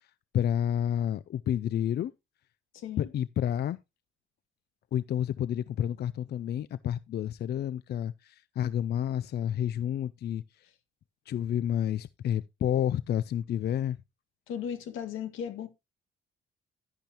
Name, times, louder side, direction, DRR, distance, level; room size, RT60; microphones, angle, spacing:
voice 1, 0.3-2.1 3.0-3.8 4.9-10.4 11.3-14.0, left 10 dB, 55° left, 0.4 m, -30 dB
voice 2, 2.7-3.1 14.5-15.7, left 8 dB, 90° left, 1.9 m, -36 dB
11.0 x 10.0 x 2.9 m
cardioid pair, 90°, 20 cm